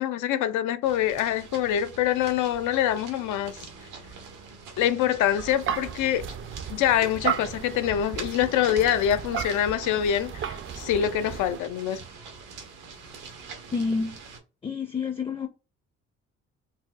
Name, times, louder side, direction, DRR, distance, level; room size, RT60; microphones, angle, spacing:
voice 1, 0.0-3.6 4.8-6.2 6.7-12.0, left 10 dB, 85° left, 0.5 m, -25 dB
sound 1, 0.8-14.4, right 5 dB, 90° right, 1.0 m, -44 dB
sound 2, 5.4-11.6, right 8 dB, 45° right, 0.5 m, -34 dB
voice 2, 13.7-14.1 14.6-15.5, left 4 dB, 20° left, 0.4 m, -28 dB
4.1 x 2.2 x 2.4 m
cardioid pair, 90°, 30 cm